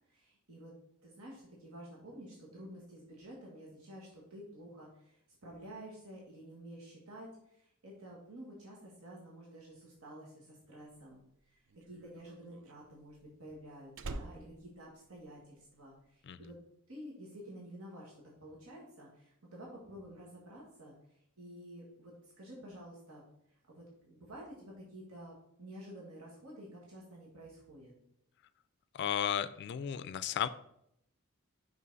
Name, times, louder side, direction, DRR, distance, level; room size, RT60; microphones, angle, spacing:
voice 1, 0.1-0.8 1.0-11.2 11.5-16.6 16.9-20.9 21.4-23.2 23.7-27.9, right 1 dB, 85° right, -3 dB, 1.8 m, -51 dB
Slam, 11.0-15.8 16.0-16.5, right 2 dB, 65° right, 0.5 m, -47 dB
voice 2, 28.9-30.5, left 9 dB, 50° left, 15 dB, 0.3 m, -34 dB
5.7 x 5.5 x 4.0 m, 0.76 s
head